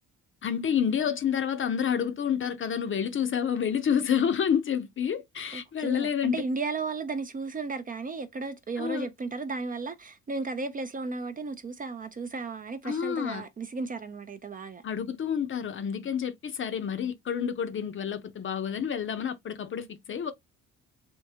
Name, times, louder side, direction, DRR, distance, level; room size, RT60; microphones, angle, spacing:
voice 1, 0.4-6.4 8.8-9.1 12.8-13.4 14.8-20.3, left 8 dB, 40° left, 0.6 m, -29 dB
voice 2, 5.5-14.8, right 4 dB, 30° right, 0.4 m, -34 dB
3.5 x 2.6 x 2.7 m
cardioid pair, 90°, 30 cm